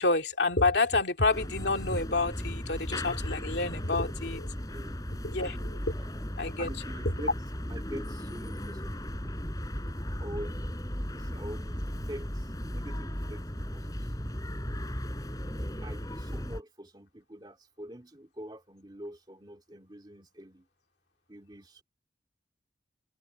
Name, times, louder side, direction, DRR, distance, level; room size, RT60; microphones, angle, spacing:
voice 1, 0.0-4.5 5.2-5.8 6.4-6.7, left 3 dB, 65° left, 2.5 m, -28 dB
sound 1, 1.3-16.6, equal, 20° left, 4.2 m, -36 dB
voice 2, 6.6-7.3 7.6-9.4 10.2-10.8 11.1-13.9 15.0-20.7 21.3-21.8, right 1 dB, 25° right, 2.4 m, -45 dB
head